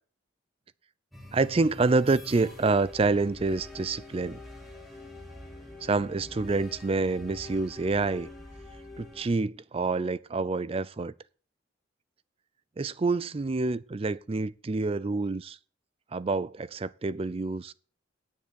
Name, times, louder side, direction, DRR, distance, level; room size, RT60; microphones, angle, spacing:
sound 1, 1.1-9.3, left 2 dB, ahead, 2.5 m, -45 dB
voice 1, 1.3-4.4 5.8-8.3 9.0-11.1 12.8-15.6 16.1-17.7, right 3 dB, 30° right, 0.4 m, -27 dB
9.5 x 7.7 x 6.2 m
head